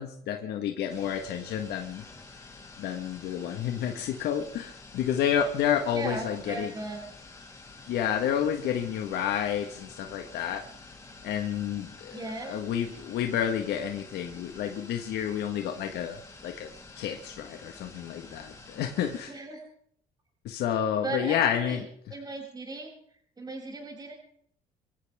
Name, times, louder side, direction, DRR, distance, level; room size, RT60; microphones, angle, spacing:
voice 1, 0.0-2.0 2.8-6.7 7.9-10.6 11.2-16.7 17.0-19.4 20.4-21.9, left 9 dB, 75° left, 4 dB, 1.6 m, -30 dB
sound 1, 0.9-19.3, left 3 dB, 20° left, 3.5 m, -49 dB
voice 2, 5.9-7.0 12.1-12.5 19.3-19.6 21.0-21.8 22.1-22.9 23.4-24.1, right 2 dB, 25° right, 0 dB, 7.2 m, -36 dB
25.0 x 15.0 x 3.6 m, 0.66 s
cardioid pair, 110°, 17 cm